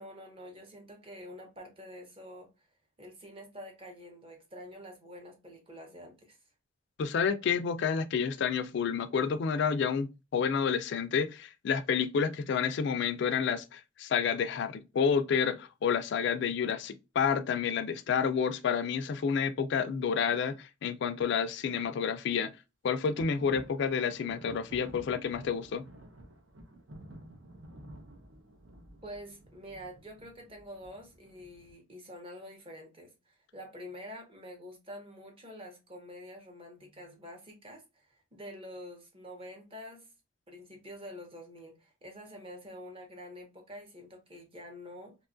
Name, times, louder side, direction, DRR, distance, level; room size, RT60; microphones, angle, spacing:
voice 1, 0.0-2.7 3.0-6.4 29.0-40.1 40.5-45.2, equal, 30° right, 0.8 m, -47 dB
voice 2, 7.0-22.5 22.8-25.9, left 6 dB, 60° left, 0.3 m, -29 dB
sound 1, 23.2-31.7, right 1 dB, 75° right, 0.7 m, -51 dB
2.8 x 2.3 x 2.4 m
head